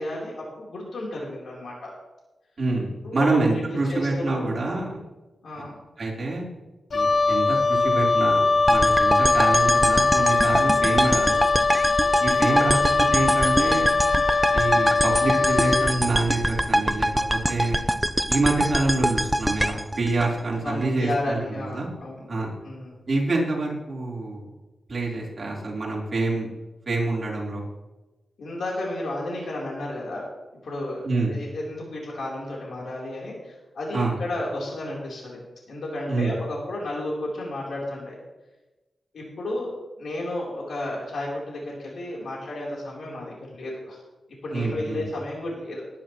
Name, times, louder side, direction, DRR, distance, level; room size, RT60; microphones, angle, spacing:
voice 1, 0.0-1.9 3.0-3.6 3.9-4.5 5.4-5.8 12.5-12.9 20.6-22.3 22.6-22.9 28.4-30.2 30.6-35.4 35.7-38.2 39.1-39.7 40.0-44.0 44.4-46.0, left 1 dB, 75° left, -4 dB, 3.7 m, -32 dB
voice 2, 2.6-4.9 5.5-5.6 6.0-6.4 6.9-11.4 12.2-12.8 13.1-13.9 14.5-17.8 18.3-21.9 22.3-22.5 23.1-24.5 24.9-26.5 26.9-27.6 31.0-31.3 33.9-34.2 36.1-36.3 44.5-45.0, right 2 dB, 40° right, -4 dB, 3.9 m, -26 dB
Wind instrument woodwind instrument, 6.9-16.0, left 3 dB, 45° left, 0.3 m, -21 dB
sound 1, 8.7-20.9, right 1 dB, 5° right, 0.5 m, -24 dB
19.0 x 10.5 x 3.1 m, 1.1 s
wide cardioid pair, 135°, 0 cm